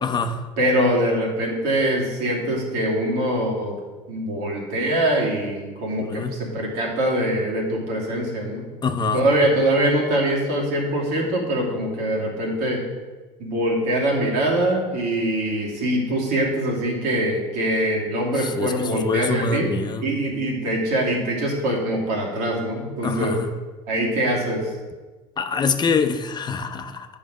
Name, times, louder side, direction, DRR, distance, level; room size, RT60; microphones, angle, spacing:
voice 1, 0.0-0.4 6.0-6.4 8.8-9.2 18.6-18.7 19.0-20.0 23.0-23.4 25.4-27.1, left 4 dB, 30° left, 7 dB, 0.7 m, -24 dB
voice 2, 0.6-3.7 4.1-8.7 9.1-12.8 13.4-19.7 20.0-23.4 23.9-24.7, right 1 dB, 70° right, -3 dB, 2.8 m, -23 dB
9.2 x 5.6 x 4.9 m, 1.3 s
supercardioid pair, 90°, 15 cm